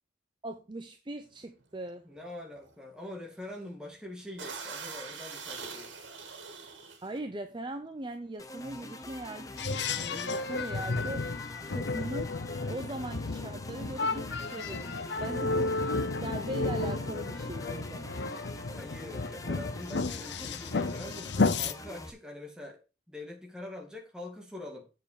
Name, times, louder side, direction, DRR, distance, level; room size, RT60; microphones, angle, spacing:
voice 1, 0.4-2.1 7.0-11.2 11.7-15.9 16.2-18.2, right 1 dB, 25° right, 0.6 m, -40 dB
sound 1, 1.4-1.6 2.1-2.3 2.6-2.7 3.3-3.6 3.9-4.0 4.4-7.2 7.9-8.1 8.4-9.6, right 5 dB, 85° right, 2.5 m, -43 dB
voice 2, 2.0-5.9 18.7-22.8 23.1-24.9, left 1 dB, 5° right, 2.3 m, -44 dB
sound 2, 8.4-22.1, left 1 dB, 20° left, 0.8 m, -45 dB
sound 3, 9.6-21.7, left 3 dB, 65° left, 0.7 m, -32 dB
7.9 x 6.7 x 4.9 m
head